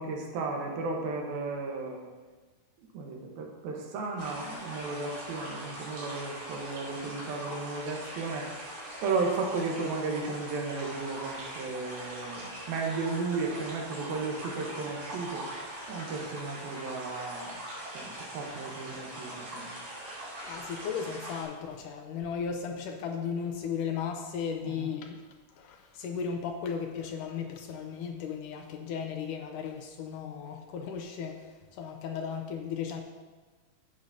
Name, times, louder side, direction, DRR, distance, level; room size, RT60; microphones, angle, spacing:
voice 1, 0.0-2.1 2.9-8.7 9.0-17.6 17.9-19.7 24.6-24.9, right 3 dB, 90° right, 1 dB, 3.0 m, -34 dB
sound 1, 4.2-21.4, right 1 dB, 45° right, 3.5 m, -41 dB
voice 2, 20.4-33.0, left 6 dB, 75° left, 3 dB, 2.0 m, -36 dB
11.5 x 8.5 x 2.7 m, 1.3 s
omnidirectional pair, 4.1 m